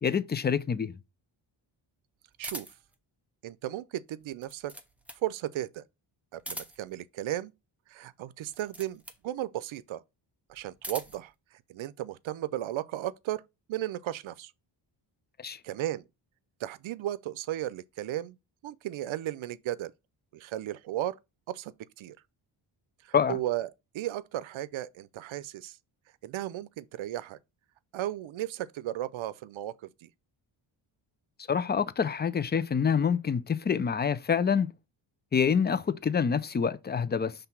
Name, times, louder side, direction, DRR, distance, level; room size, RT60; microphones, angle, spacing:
voice 1, 0.0-0.9 15.4-15.6 23.1-23.4 31.5-34.7 35.3-37.3, left 7 dB, 25° left, 0.4 m, -26 dB
sound 1, 2.4-2.9 4.2-5.3 6.3-7.0 8.5-9.3 10.5-11.3, right 1 dB, 5° right, 0.8 m, -42 dB
voice 2, 3.4-4.7 5.2-5.8 6.3-7.5 7.9-10.0 10.5-11.3 11.7-13.4 13.7-14.5 15.6-16.1 16.6-18.4 18.6-19.9 20.3-21.2 21.5-22.2 23.0-25.8 26.2-27.4 27.9-29.7 30.0-30.1, right 13 dB, 70° right, 0.6 m, -35 dB
5.8 x 3.4 x 5.8 m
cardioid pair, 110°, 49 cm